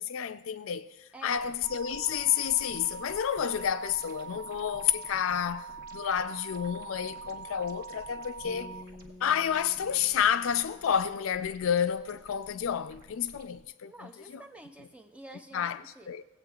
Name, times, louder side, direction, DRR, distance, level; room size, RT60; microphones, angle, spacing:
voice 1, 0.0-8.7 9.2-14.4 15.5-16.2, left 8 dB, 70° left, 0.4 m, -30 dB
voice 2, 1.1-1.5 13.9-16.1, right 1 dB, 5° right, 0.4 m, -49 dB
sound 1, 1.2-13.6, right 1 dB, 45° right, 0.9 m, -54 dB
sound 2, 1.6-8.8, right 6 dB, 85° right, 0.4 m, -44 dB
sound 3, 8.4-11.6, left 2 dB, 10° left, 0.8 m, -51 dB
17.0 x 8.2 x 2.3 m
head